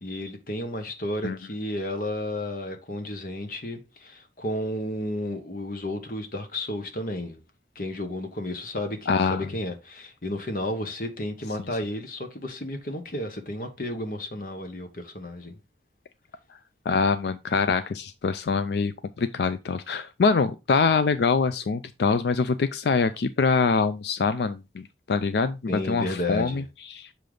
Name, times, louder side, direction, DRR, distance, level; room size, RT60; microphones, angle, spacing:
voice 1, 0.0-7.4 7.7-15.6 25.7-26.6, left 1 dB, 50° left, 1.3 m, -32 dB
voice 2, 9.1-9.4 16.9-25.6 25.9-27.1, left 4 dB, 70° left, 0.4 m, -24 dB
6.7 x 5.1 x 3.8 m
head